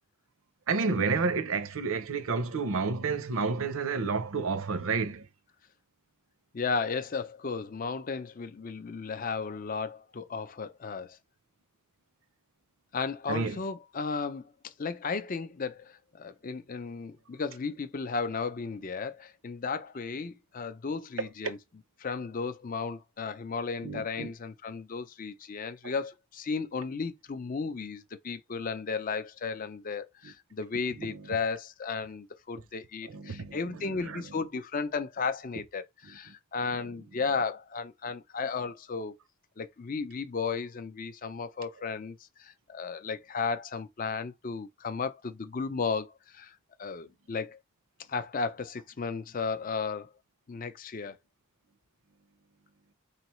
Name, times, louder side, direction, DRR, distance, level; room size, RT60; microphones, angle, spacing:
voice 1, 0.7-5.2 13.3-13.6 21.2-21.3 23.8-24.3 30.2-30.3 31.0-31.3 33.1-34.2, right 4 dB, 70° right, 0.6 m, -30 dB
voice 2, 6.5-11.2 12.9-21.6 22.0-39.1 39.6-47.6 48.1-50.1 50.5-51.2, left 4 dB, 40° left, 0.5 m, -34 dB
3.8 x 3.1 x 3.1 m
head